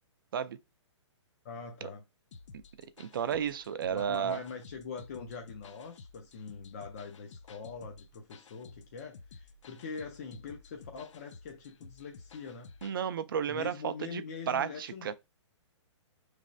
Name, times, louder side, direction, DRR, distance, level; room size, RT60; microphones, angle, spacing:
voice 1, 1.4-2.0 3.9-12.7 13.5-15.1, left 5 dB, 30° left, 0.4 m, -43 dB
sound 1, 2.3-13.0, left 4 dB, 75° left, 0.6 m, -53 dB
voice 2, 3.0-4.4 12.8-15.1, right 8 dB, 45° right, 0.4 m, -33 dB
6.0 x 3.2 x 2.5 m
hypercardioid pair, 170°, 16 cm